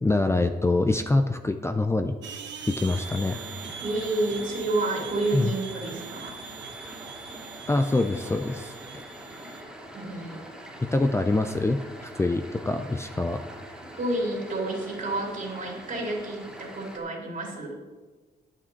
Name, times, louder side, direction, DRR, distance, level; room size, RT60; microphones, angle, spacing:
voice 1, 0.0-2.2 2.7-3.4 5.3-5.5 7.7-9.0 10.8-13.4, left 2 dB, 15° left, 7 dB, 0.5 m, -25 dB
sound 1, 2.2-9.6, right 7 dB, 80° right, 1.0 m, -42 dB
sound 2, 2.9-17.0, right 1 dB, 5° right, 2.3 m, -44 dB
voice 2, 3.8-6.4 9.9-10.4 13.8-17.8, right 2 dB, 45° right, -1 dB, 2.8 m, -30 dB
9.5 x 8.6 x 4.5 m, 1.3 s
cardioid pair, 95°, 19 cm